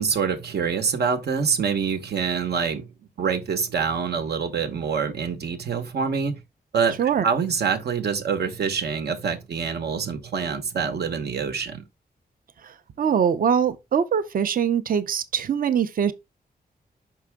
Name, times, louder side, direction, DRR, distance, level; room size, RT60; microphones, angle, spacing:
voice 1, 0.0-2.8 3.2-6.4 6.7-11.8, right 6 dB, 85° right, 1.2 m, -26 dB
voice 2, 12.6-16.1, right 7 dB, 60° right, 0.6 m, -23 dB
6.0 x 5.5 x 3.5 m
wide cardioid pair, 145°, 16 cm